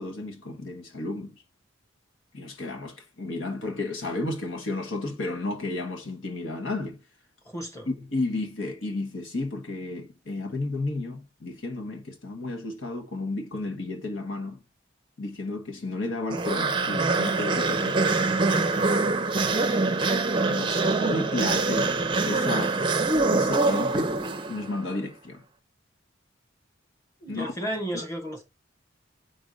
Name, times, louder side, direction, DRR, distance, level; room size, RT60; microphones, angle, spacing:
voice 1, 0.0-1.4 2.3-7.0 7.9-14.6 15.2-18.2 20.5-21.9 22.2-22.8 23.3-24.1 24.5-25.4 27.3-27.6 27.9-28.1, left 2 dB, 80° left, 1.4 m, -32 dB
voice 2, 7.5-7.9 27.2-28.4, equal, 15° left, 1.6 m, -33 dB
sound 1, 16.3-24.8, right 3 dB, 25° right, 0.5 m, -24 dB
5.2 x 3.7 x 5.1 m
head